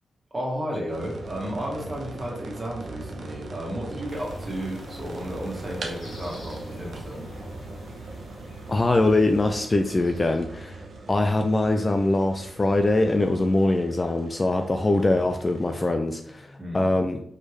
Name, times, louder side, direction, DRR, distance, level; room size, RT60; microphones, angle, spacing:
voice 1, 0.3-7.2 16.6-16.8, equal, 25° right, -2 dB, 1.6 m, -33 dB
sound 1, 0.9-15.9, right 3 dB, 70° right, 0.7 m, -41 dB
sound 2, 4.1-10.4, left 1 dB, 85° left, 1.7 m, -45 dB
voice 2, 8.7-10.8 11.1-17.2, left 2 dB, 25° left, 5 dB, 0.4 m, -23 dB
4.4 x 3.3 x 3.2 m, 0.67 s
cardioid pair, 80°, 0 cm